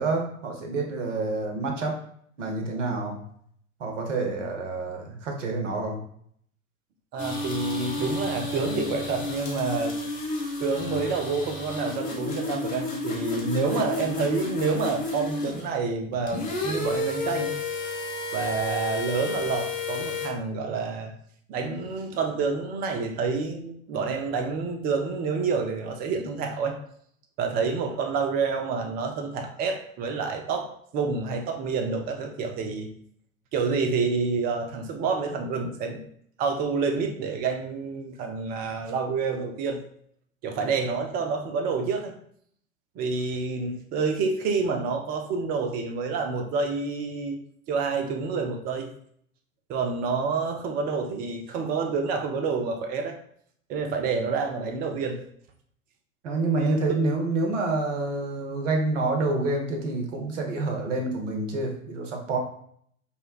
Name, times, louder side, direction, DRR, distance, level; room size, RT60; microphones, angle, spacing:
voice 1, 0.0-1.9 2.4-3.2 3.8-6.0 56.2-62.4, right 3 dB, 60° right, 2 dB, 1.1 m, -28 dB
voice 2, 7.1-10.0 10.6-17.6 18.3-21.1 21.5-26.8 27.4-32.9 33.5-36.0 36.4-39.8 40.4-42.1 43.0-47.4 47.7-48.9 49.7-53.2 53.7-55.2 56.6-56.8, right 4 dB, 25° right, 4 dB, 0.5 m, -28 dB
sound 1, 7.2-15.7 16.1-20.3, left 3 dB, 20° left, 0.7 m, -31 dB
5.4 x 2.1 x 2.3 m, 0.64 s
figure-of-eight pair, 90°, 41 cm